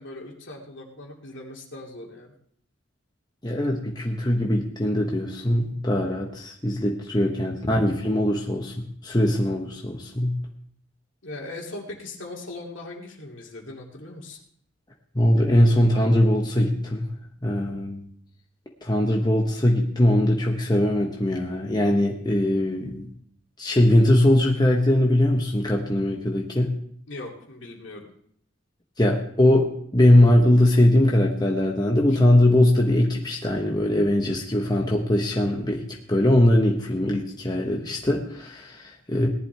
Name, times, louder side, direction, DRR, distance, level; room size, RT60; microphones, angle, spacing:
voice 1, 0.0-2.3 3.5-3.6 11.2-14.4 27.1-28.0, left 2 dB, 65° left, -1 dB, 2.6 m, -39 dB
voice 2, 3.4-10.3 15.1-17.1 17.4-18.0 18.8-23.1 23.6-26.7 29.0-39.3, left 1 dB, 20° left, 0 dB, 1.1 m, -21 dB
18.0 x 11.0 x 3.4 m, 0.65 s
head